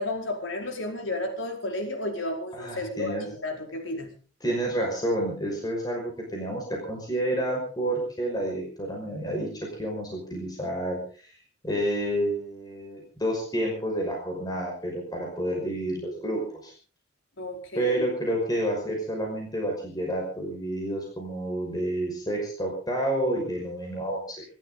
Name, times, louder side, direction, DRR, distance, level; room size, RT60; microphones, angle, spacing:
voice 1, 0.0-4.1 17.4-18.1, left 2 dB, 85° left, 3 dB, 4.9 m, -32 dB
voice 2, 2.5-3.2 4.4-11.3 11.6-16.7 17.7-24.4, right 1 dB, 20° left, 0 dB, 5.7 m, -29 dB
25.0 x 13.5 x 3.9 m, 0.40 s
head